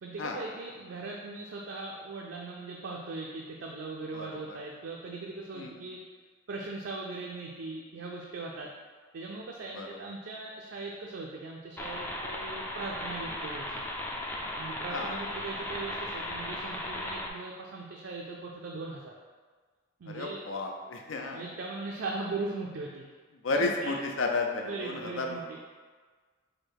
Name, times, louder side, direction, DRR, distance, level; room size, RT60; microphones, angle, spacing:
voice 1, 0.0-6.0 6.5-8.7 9.1-13.8 14.6-19.1 20.0-20.4 21.3-23.0 23.5-23.9 24.7-25.4, right 3 dB, 70° right, -1 dB, 0.4 m, -39 dB
voice 2, 4.1-4.6 5.5-5.7 9.7-10.0 13.2-13.4 14.9-15.2 20.1-21.4 23.4-25.6, left 3 dB, 80° left, 2 dB, 0.6 m, -33 dB
sound 1, 11.8-17.3, left 1 dB, 10° left, 0.3 m, -36 dB
4.9 x 2.1 x 4.6 m, 1.5 s
head